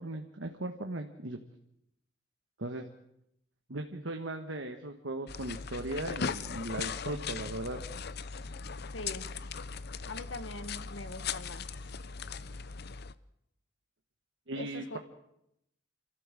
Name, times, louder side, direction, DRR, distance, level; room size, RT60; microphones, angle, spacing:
voice 1, 0.0-1.4 2.6-2.9 3.7-7.8 14.5-15.0, right 1 dB, 75° right, 4 dB, 1.5 m, -38 dB
sound 1, 5.3-13.1, left 5 dB, 60° left, 0.7 m, -39 dB
voice 2, 8.9-9.3 10.1-11.6 14.5-15.0, left 2 dB, 75° left, 10 dB, 1.8 m, -42 dB
28.5 x 14.0 x 7.6 m, 0.80 s
head